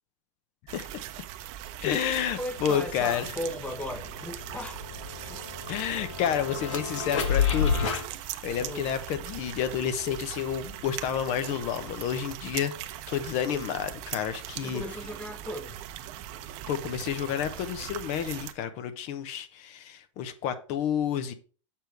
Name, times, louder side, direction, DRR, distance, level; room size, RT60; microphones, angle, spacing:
voice 1, 0.7-1.0 1.8-3.2 5.7-7.7 8.4-12.7 13.1-14.8 16.7-21.3, left 9 dB, 45° left, 1.0 m, -30 dB
sound 1, 0.7-18.5, right 12 dB, 50° right, 0.8 m, -40 dB
voice 2, 2.4-4.8 5.3-5.4 8.6-8.9 14.6-15.8, left 1 dB, 10° left, 0.9 m, -37 dB
sound 2, 2.6-2.7 3.0-8.0, left 6 dB, 75° left, 1.8 m, -31 dB
7.3 x 5.3 x 4.7 m
hypercardioid pair, 120°, 16 cm